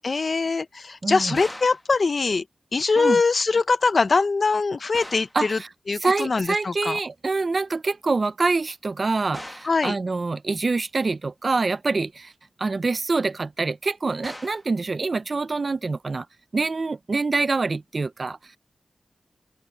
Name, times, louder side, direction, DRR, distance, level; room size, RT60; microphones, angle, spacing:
voice 1, 0.0-2.4 2.7-5.6 5.9-7.0 9.6-10.0, left 4 dB, 55° left, 0.6 m, -22 dB
voice 2, 1.0-1.4 3.0-3.2 5.3-5.7 6.0-12.3 12.6-16.3 16.5-18.4, right 3 dB, 50° right, 0.5 m, -25 dB
sound 1, 1.4-1.9 4.9-5.4 9.3-9.8 14.2-14.7, left 1 dB, 10° left, 1.0 m, -40 dB
open air
wide cardioid pair, 120°, 0 cm